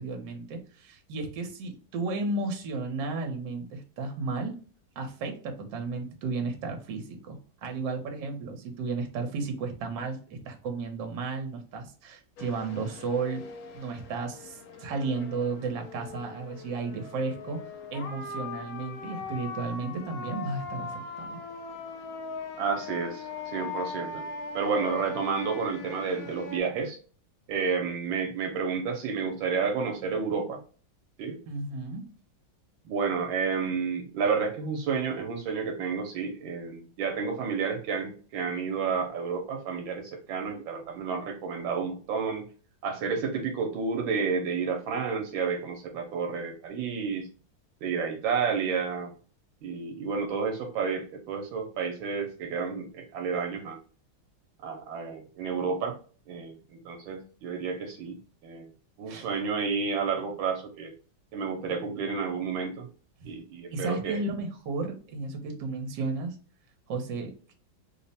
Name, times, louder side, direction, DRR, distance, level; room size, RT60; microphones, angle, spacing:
voice 1, 0.0-4.6 5.0-13.4 13.7-17.6 17.9-21.4 31.5-32.1 59.1-59.3 63.2-63.3 63.7-66.3 66.9-67.5, right 3 dB, 70° right, 4 dB, 1.4 m, -33 dB
sound 1, 12.4-26.6, left 4 dB, 70° left, 0.9 m, -40 dB
voice 2, 22.6-24.3 24.5-27.0 27.5-30.6 31.2-31.4 32.8-42.5 42.8-47.3 47.8-49.1 49.6-53.8 54.6-56.0 56.3-58.2 58.4-58.7 59.0-60.9 61.3-62.9 63.2-64.2, right 5 dB, 85° right, 3 dB, 1.4 m, -30 dB
3.5 x 2.1 x 4.0 m, 0.40 s
omnidirectional pair, 2.1 m